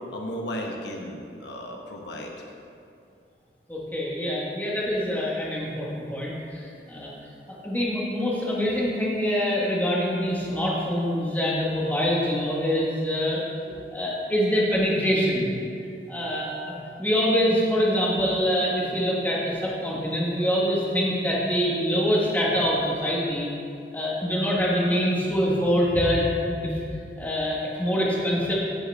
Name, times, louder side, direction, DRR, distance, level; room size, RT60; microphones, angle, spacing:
voice 1, 0.1-2.3 13.7-13.8, equal, 75° left, 1 dB, 1.2 m, -34 dB
voice 2, 3.7-7.1 7.5-13.4 13.9-15.5 16.1-23.5 23.9-26.7 27.2-28.5, equal, 10° left, -5 dB, 1.8 m, -25 dB
15.5 x 7.1 x 3.6 m, 2.5 s
head